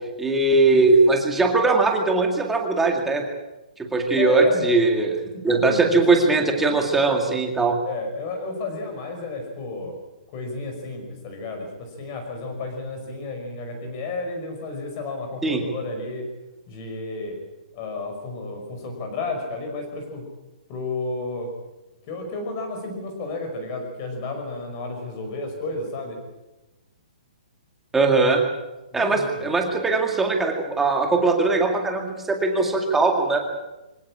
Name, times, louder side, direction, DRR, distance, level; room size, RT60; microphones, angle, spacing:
voice 1, 0.2-3.2 3.8-5.2 5.4-7.8 15.4-15.6 27.9-28.4 28.9-33.4, right 3 dB, 5° right, 2 dB, 2.1 m, -20 dB
voice 2, 4.2-4.6 5.3-6.0 7.9-9.9 10.3-16.2 16.7-17.4 17.7-20.2 20.7-21.5 22.0-26.2 28.9-29.5, left 3 dB, 25° left, 4 dB, 5.4 m, -32 dB
25.0 x 17.0 x 8.8 m, 1.0 s
hypercardioid pair, 175°, 5 cm